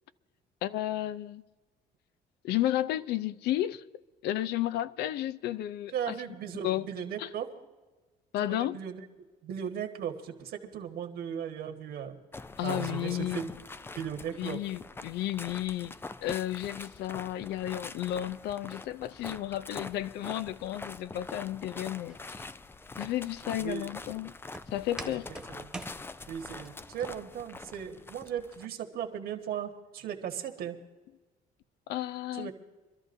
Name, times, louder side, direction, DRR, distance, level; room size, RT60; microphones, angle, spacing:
voice 1, 0.6-1.4 2.4-3.8 4.2-6.1 6.6-6.9 7.2-7.3 8.3-8.8 12.6-13.4 14.4-15.9 16.2-22.4 23.0-24.3 24.7-25.3 31.9-32.5, left 13 dB, 80° left, 0.5 m, -32 dB
voice 2, 5.9-7.5 8.5-9.1 9.4-12.2 12.6-13.5 14.0-14.6 23.6-23.9 25.0-25.2 25.5-25.8 26.3-30.8 32.3-32.5, right 8 dB, 65° right, 1.6 m, -37 dB
sound 1, 12.3-28.7, left 3 dB, 15° left, 0.4 m, -44 dB
Walk footsteps, 22.1-26.7, right 2 dB, 5° right, 1.3 m, -46 dB
25.5 x 13.0 x 2.6 m
cardioid pair, 110°, 17 cm